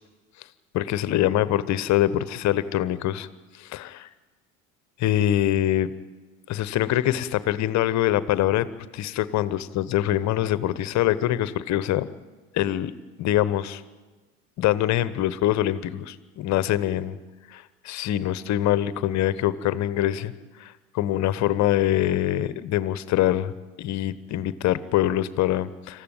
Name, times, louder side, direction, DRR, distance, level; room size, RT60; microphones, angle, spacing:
voice 1, 0.7-3.3 3.5-4.1 5.0-5.9 6.5-8.7 8.9-12.1 12.5-12.9 13.2-13.8 14.6-17.2 17.5-20.3 20.6-23.5 23.8-26.0, left 13 dB, 40° left, 16 dB, 1.2 m, -24 dB
27.0 x 15.0 x 9.3 m, 1.3 s
figure-of-eight pair, 75°, 41 cm